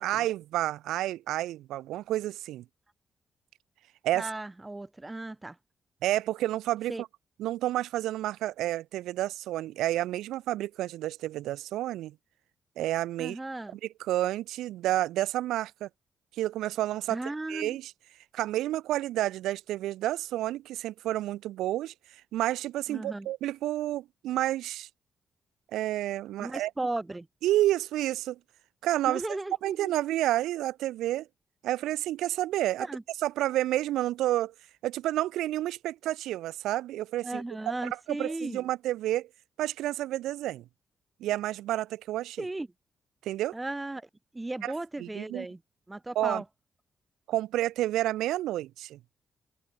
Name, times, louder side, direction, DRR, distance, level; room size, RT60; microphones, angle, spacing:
voice 1, 0.0-2.6 4.0-4.3 6.0-7.1 7.4-12.1 12.8-13.4 13.7-15.9 16.4-17.2 17.5-17.9 18.3-21.9 22.3-24.9 25.7-26.7 27.4-28.4 28.8-29.2 29.6-31.3 31.6-32.9 33.2-34.5 34.8-37.4 38.1-39.3 39.6-40.6 41.2-42.4 43.2-43.6 44.6-44.7 45.0-45.5 46.1-46.4 47.3-49.0, right 14 dB, 90° right, 1.5 m, -30 dB
voice 2, 4.1-5.6 6.9-7.0 13.2-13.8 17.1-17.8 22.9-23.3 26.4-27.3 29.1-29.9 32.8-33.0 37.2-38.7 42.4-42.7 43.5-44.1 44.3-45.6 45.9-46.4, right 2 dB, 20° right, 2.2 m, -36 dB
supercardioid pair, 55°, 0 cm